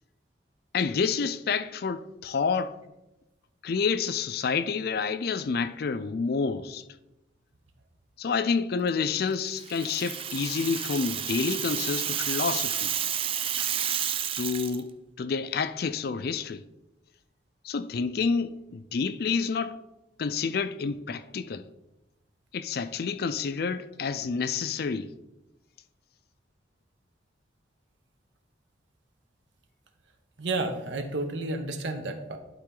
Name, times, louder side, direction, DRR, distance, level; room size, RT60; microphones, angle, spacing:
voice 1, 0.7-2.8 3.6-6.8 8.2-12.9 13.6-13.7 14.4-14.9 15.2-16.6 17.6-19.8 20.2-21.6 22.5-25.1, left 5 dB, 55° left, 0.4 m, -29 dB
Rattle (instrument), 9.6-14.8, right 9 dB, 30° right, 0.3 m, -30 dB
voice 2, 30.4-32.4, right 2 dB, 80° right, 1.0 m, -31 dB
11.5 x 4.1 x 3.8 m
head